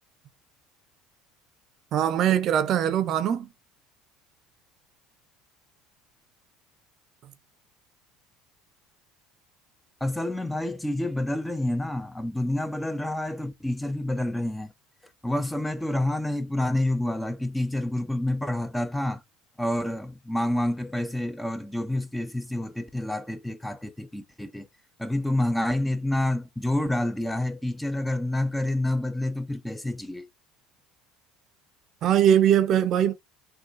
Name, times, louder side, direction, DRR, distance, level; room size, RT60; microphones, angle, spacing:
voice 1, 1.9-3.5 32.0-33.1, right 10 dB, 55° right, 0.5 m, -21 dB
voice 2, 10.0-14.7 15.2-19.2 19.6-24.6 25.0-30.2, left 1 dB, 5° left, 0.4 m, -28 dB
3.8 x 2.3 x 2.5 m
hypercardioid pair, 80°, 0 cm